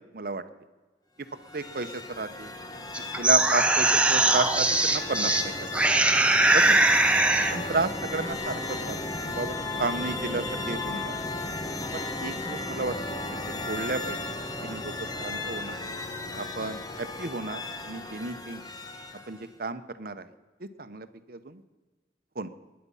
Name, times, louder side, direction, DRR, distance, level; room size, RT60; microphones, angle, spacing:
sound 1, 1.3-19.5, left 2 dB, 20° left, 1.1 m, -35 dB
voice 1, 1.5-1.9 2.2-2.5 3.2-5.5 5.9-6.0 6.5-6.6 7.5-9.0 9.3-9.5 9.8-11.1 11.9-12.9 13.7-14.2 14.6-14.8 15.2-15.7 16.4-17.6 17.9-18.6 19.3-20.2 20.8-21.6 22.4-22.5, right 3 dB, 55° right, 11 dB, 0.9 m, -32 dB
sound 2, 2.9-5.4 5.7-7.6, right 2 dB, 5° right, 1.0 m, -21 dB
21.5 x 9.7 x 5.6 m, 1.3 s
head